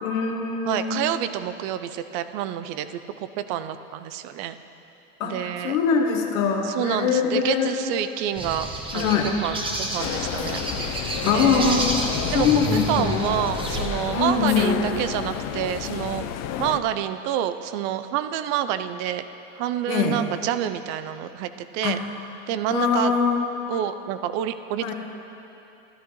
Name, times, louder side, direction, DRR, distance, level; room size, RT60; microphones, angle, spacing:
voice 1, 0.0-1.1 5.2-7.7 8.9-9.3 11.2-11.9 12.3-13.3 14.1-14.9 19.9-20.2 21.8-22.0 22.7-23.4 24.8-24.9, left 6 dB, 85° left, 2 dB, 1.3 m, -23 dB
voice 2, 0.7-4.6 5.2-5.8 6.6-10.6 11.2-11.8 12.3-12.6 12.9-16.2 16.6-19.2 19.5-22.0 22.5-23.1 23.7-24.9, right 11 dB, 60° right, 11 dB, 0.6 m, -28 dB
sound 1, 8.4-13.9, right 1 dB, 15° right, 0.8 m, -30 dB
sound 2, 10.0-16.8, left 9 dB, 45° left, 0.5 m, -31 dB
13.0 x 11.0 x 3.1 m, 2.9 s
supercardioid pair, 120°, 39 cm